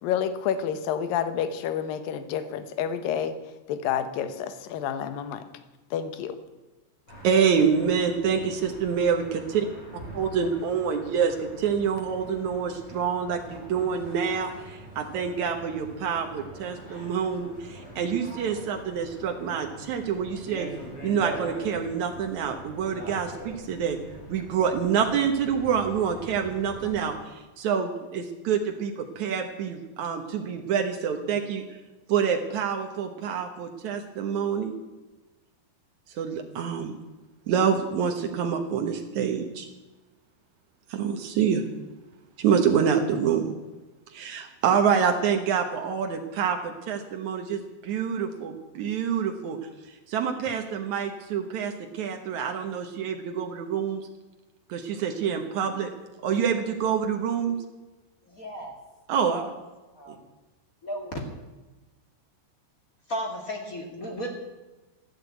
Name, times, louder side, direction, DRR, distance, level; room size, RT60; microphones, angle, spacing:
voice 1, 0.0-3.4 3.7-5.4 5.9-6.4, left 8 dB, 70° left, 11 dB, 2.2 m, -29 dB
sound 1, 7.1-27.1, right 1 dB, 30° left, 7.6 m, -43 dB
voice 2, 7.2-9.7 10.1-20.7 21.0-24.0 24.3-31.6 32.1-34.7 36.1-36.9 37.5-39.7 40.9-41.6 42.4-43.5 44.1-49.6 50.1-54.0 54.7-55.9 56.2-57.6 59.1-59.5, right 7 dB, 85° right, 4 dB, 1.6 m, -27 dB
voice 3, 58.2-58.7 59.2-59.5 59.9-60.3 60.8-61.2 63.1-64.3, equal, 50° left, 2 dB, 1.0 m, -34 dB
14.0 x 12.5 x 8.2 m, 1.1 s
omnidirectional pair, 5.4 m